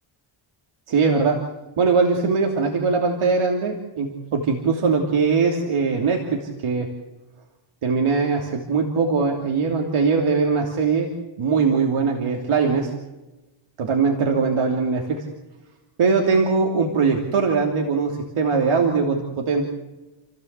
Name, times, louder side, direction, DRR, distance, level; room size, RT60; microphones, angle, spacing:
voice 1, 0.9-1.5 1.8-6.9 7.8-11.1 11.4-12.9 13.8-15.3 16.0-19.7, right 4 dB, 80° right, 2 dB, 3.1 m, -21 dB
29.5 x 16.0 x 8.2 m, 1.1 s
wide cardioid pair, 135°, 49 cm